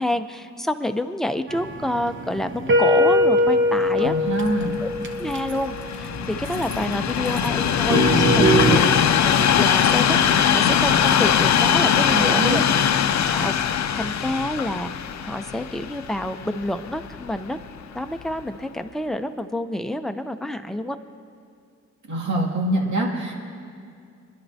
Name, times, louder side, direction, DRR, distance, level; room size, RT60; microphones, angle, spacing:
voice 1, 0.0-4.1 4.8-4.9 5.2-12.6 13.3-17.6 17.9-21.0, left 1 dB, ahead, 7 dB, 0.5 m, -28 dB
sound 1, 1.5-8.8, equal, 40° right, 0.8 m, -22 dB
voice 2, 4.0-4.8 11.9-12.6 22.1-23.3, right 1 dB, 70° right, -2 dB, 2.3 m, -24 dB
Train, 4.3-17.5 18.2-18.3, left 8 dB, 65° left, 0.5 m, -21 dB
24.5 x 11.0 x 2.7 m, 2.4 s
wide cardioid pair, 135°, 30 cm